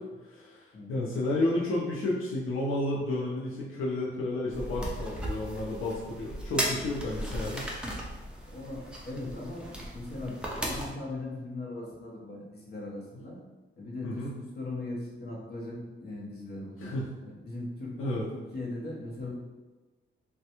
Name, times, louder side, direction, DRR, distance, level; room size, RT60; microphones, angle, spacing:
voice 1, 0.2-7.7 14.0-14.3 16.8-17.1 18.0-18.2, left 1 dB, 75° left, -5 dB, 0.5 m, -31 dB
sound 1, 4.5-10.9, right 1 dB, 5° right, 0.4 m, -36 dB
voice 2, 8.5-13.4 13.8-17.9 18.3-19.3, left 2 dB, 50° left, -4 dB, 0.8 m, -39 dB
3.3 x 2.2 x 2.9 m, 1.2 s
wide cardioid pair, 165°, 21 cm